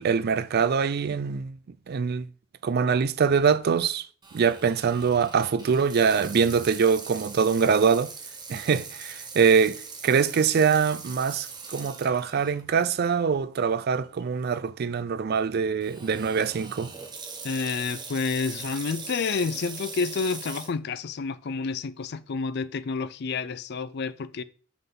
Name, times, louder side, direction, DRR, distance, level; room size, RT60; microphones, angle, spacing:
voice 1, 0.0-1.6 1.9-2.2 2.6-4.1 4.3-8.1 8.5-16.9, right 6 dB, 50° right, 0.4 m, -24 dB
Water tap faucet / Sink (filling or washing), 4.2-12.6 13.1-13.2 13.9-14.2 15.8-20.7, right 4 dB, 20° right, 0.9 m, -41 dB
voice 2, 17.4-24.4, left 5 dB, 55° left, 0.4 m, -29 dB
5.6 x 3.9 x 5.3 m
head